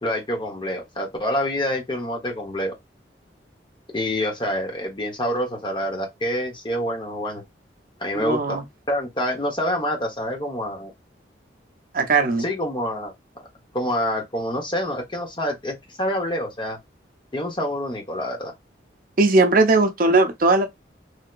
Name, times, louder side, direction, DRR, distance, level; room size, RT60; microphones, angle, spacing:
voice 1, 0.0-2.7 3.9-7.4 8.0-8.6 8.9-10.9 12.4-13.1 13.7-16.8 17.3-18.5, left 1 dB, 25° left, 0.8 m, -27 dB
voice 2, 8.1-8.6 11.9-12.5 19.2-20.7, right 3 dB, 50° right, 0.5 m, -18 dB
3.2 x 2.8 x 2.3 m
head